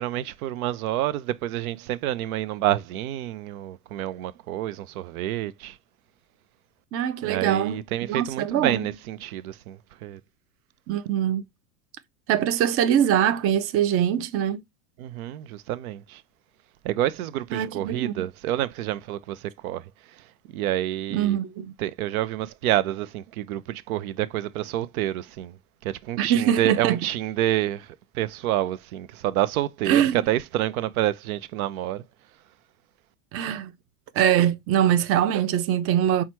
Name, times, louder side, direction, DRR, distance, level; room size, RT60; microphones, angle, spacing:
voice 1, 0.0-5.8 7.2-10.2 15.0-16.2 16.8-19.8 20.5-21.4 21.8-25.6 25.8-30.0 30.3-32.0, right 13 dB, 85° right, 0.6 m, -28 dB
voice 2, 6.9-8.8 10.9-11.4 12.3-14.6 17.5-18.2 21.1-21.7 26.2-27.0 29.9-30.2 33.3-33.7 34.1-36.2, right 10 dB, 35° right, 0.6 m, -23 dB
5.6 x 2.3 x 2.9 m
supercardioid pair, 115°, 42 cm